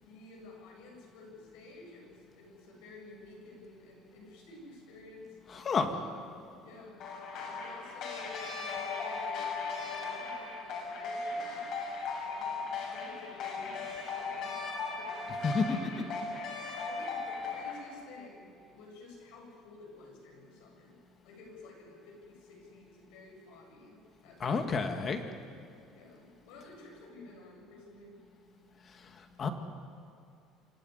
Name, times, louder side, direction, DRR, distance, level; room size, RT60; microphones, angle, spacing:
voice 1, 0.0-6.3 6.6-7.0 7.3-11.6 12.3-16.3 16.8-24.8 25.9-28.2, left 2 dB, 85° left, 0 dB, 7.9 m, -52 dB
voice 2, 5.5-6.0 15.4-16.0 24.4-25.2 28.9-29.5, left 4 dB, 35° left, 6 dB, 2.1 m, -31 dB
sound 1, 7.0-17.8, left 4 dB, 60° left, 7.1 m, -37 dB
25.0 x 15.0 x 9.6 m, 2.6 s
cardioid pair, 115°, 0 cm